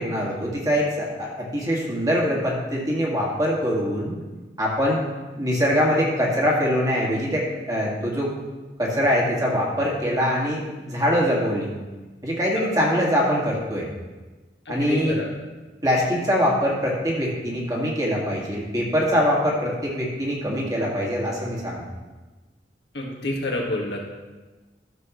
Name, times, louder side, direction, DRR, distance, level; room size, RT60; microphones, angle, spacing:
voice 1, 0.0-4.1 4.6-5.0 5.3-8.3 8.8-11.7 12.2-13.9 14.7-15.2 15.8-21.8, equal, 20° right, -4 dB, 2.0 m, -23 dB
voice 2, 14.6-15.3 22.9-24.0, left 1 dB, 70° left, -1 dB, 1.8 m, -28 dB
13.5 x 6.8 x 3.1 m, 1.2 s
head